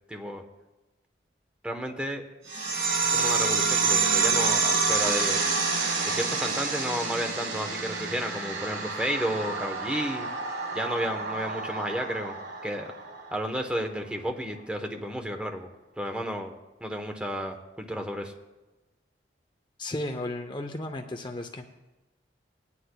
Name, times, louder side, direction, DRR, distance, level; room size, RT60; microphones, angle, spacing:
voice 1, 0.1-0.4 1.6-2.2 3.1-5.4 6.0-10.3 10.7-12.4 12.6-12.9 13.3-15.7 16.0-16.5 16.8-18.3, equal, 5° right, 4 dB, 0.9 m, -32 dB
sound 1, 2.5-13.5, right 4 dB, 80° right, 1.5 m, -28 dB
voice 2, 19.8-21.7, left 1 dB, 25° left, 6 dB, 0.6 m, -34 dB
21.0 x 9.7 x 2.2 m, 1.1 s
head